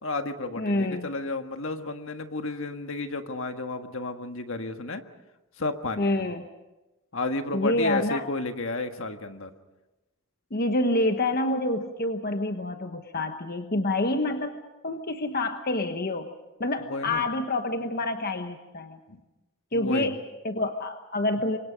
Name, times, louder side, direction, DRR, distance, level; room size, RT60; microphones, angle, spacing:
voice 1, 0.0-5.0 5.6-6.3 7.1-9.5 16.8-17.3 19.1-19.2 19.7-20.1, left 2 dB, 60° left, 6 dB, 1.7 m, -32 dB
voice 2, 0.6-1.1 6.0-6.5 7.5-8.2 10.5-16.3 16.6-19.0 19.7-21.6, left 2 dB, 45° left, 6 dB, 1.2 m, -27 dB
28.0 x 24.5 x 5.3 m, 1.0 s
head